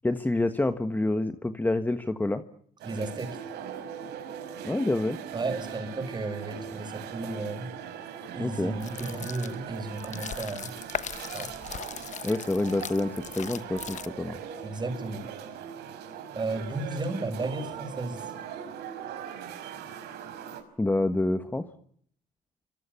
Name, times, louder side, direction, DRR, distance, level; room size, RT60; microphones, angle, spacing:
voice 1, 0.0-2.4 4.6-5.2 8.4-8.8 12.2-14.4 20.8-21.7, left 2 dB, 10° left, 9 dB, 1.4 m, -27 dB
voice 2, 2.8-3.4 5.3-7.7 8.3-10.7 11.3-11.5 14.6-15.2 16.3-18.2, right 2 dB, 25° right, 7 dB, 7.0 m, -33 dB
sound 1, 2.8-20.6, right 8 dB, 80° right, 5.2 m, -40 dB
sound 2, 8.7-14.4, left 8 dB, 45° left, 1.2 m, -39 dB
28.0 x 26.0 x 7.1 m, 0.63 s
cardioid pair, 110°, 17 cm